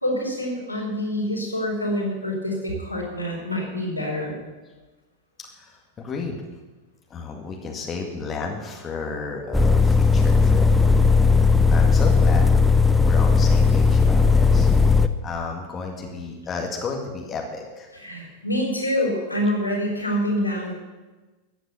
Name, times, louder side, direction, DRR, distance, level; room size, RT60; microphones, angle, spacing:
voice 1, 0.0-4.4 17.9-20.7, equal, 85° left, -2 dB, 4.3 m, -26 dB
voice 2, 5.4-6.4 7.1-10.7 11.7-12.6 13.0-14.7 15.2-17.9, left 4 dB, 25° left, 1 dB, 2.1 m, -32 dB
sound 1, 9.5-15.1, left 4 dB, 5° left, 0.8 m, -17 dB
14.0 x 9.4 x 6.9 m, 1.2 s
figure-of-eight pair, 90°, 0 cm